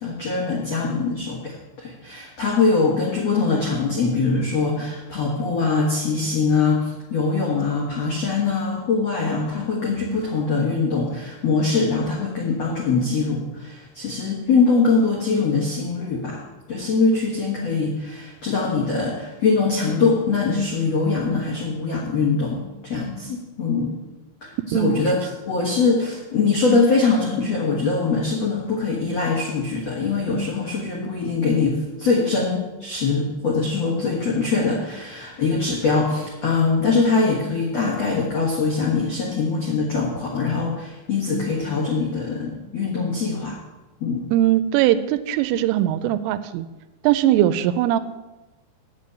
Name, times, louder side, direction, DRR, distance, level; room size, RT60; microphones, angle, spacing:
voice 1, 0.0-16.4 16.7-23.9 24.4-43.6 44.0-44.2, left 4 dB, 70° left, -4 dB, 1.5 m, -22 dB
voice 2, 44.3-46.7 47.0-48.0, right 12 dB, 90° right, 13 dB, 3.2 m, -20 dB
8.5 x 7.0 x 8.2 m, 1.1 s
omnidirectional pair, 5.7 m